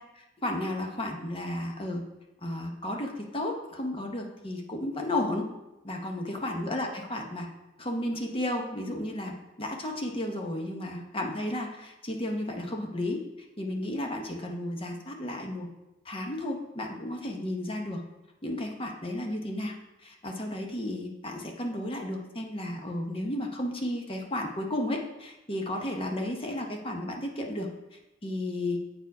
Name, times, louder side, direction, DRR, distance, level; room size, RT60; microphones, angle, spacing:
voice 1, 0.1-2.0 2.4-5.5 5.8-7.5 7.8-9.3 9.6-13.2 13.6-15.7 16.0-18.0 18.4-19.7 20.0-27.7 28.2-28.8, left 1 dB, 30° left, 2 dB, 0.9 m, -33 dB
7.9 x 4.7 x 4.7 m, 0.97 s
head